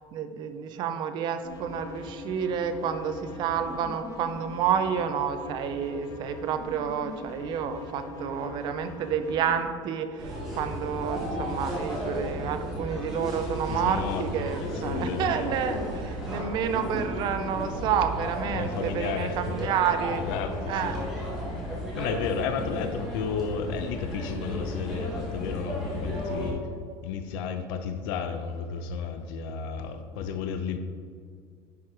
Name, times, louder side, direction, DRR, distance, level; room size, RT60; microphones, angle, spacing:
voice 1, 0.1-20.2 20.7-21.0, right 8 dB, 40° right, 8 dB, 0.5 m, -29 dB
sound 1, 1.4-9.6, left 3 dB, 30° left, 0.9 m, -42 dB
sound 2, 10.2-26.5, equal, 5° right, 1.9 m, -34 dB
voice 2, 13.7-15.5 18.5-19.7 20.2-21.1 21.6-26.6 27.0-30.8, left 6 dB, 70° left, 8 dB, 0.8 m, -33 dB
10.5 x 4.7 x 4.8 m, 2.1 s
cardioid pair, 160°, 12 cm